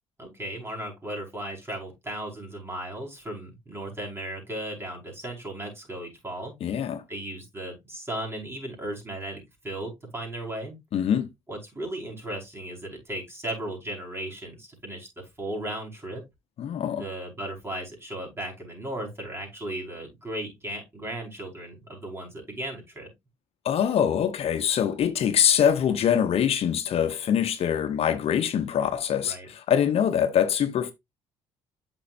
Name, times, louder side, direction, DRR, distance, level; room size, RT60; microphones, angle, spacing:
voice 1, 0.2-6.5 7.1-10.8 11.5-15.1 15.4-16.2 17.0-23.1 29.2-29.5, right 1 dB, 20° right, 5.1 m, -36 dB
voice 2, 6.6-7.0 10.9-11.3 16.6-17.0 23.6-30.9, left 9 dB, 60° left, 0.9 m, -24 dB
8.2 x 6.3 x 2.6 m
supercardioid pair, 75°, 12 cm